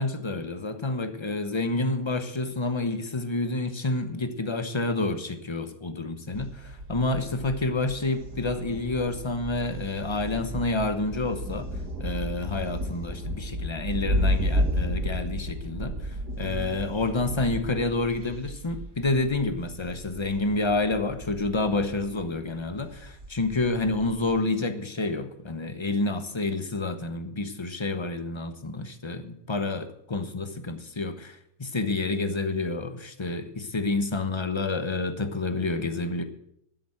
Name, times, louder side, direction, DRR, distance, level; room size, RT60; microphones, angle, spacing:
voice 1, 0.0-11.7 12.0-36.2, left 2 dB, 20° left, 9 dB, 0.9 m, -29 dB
Thunder, 6.3-24.4, equal, 85° right, 2.7 m, -33 dB
12.5 x 7.9 x 7.7 m, 0.75 s
omnidirectional pair, 1.7 m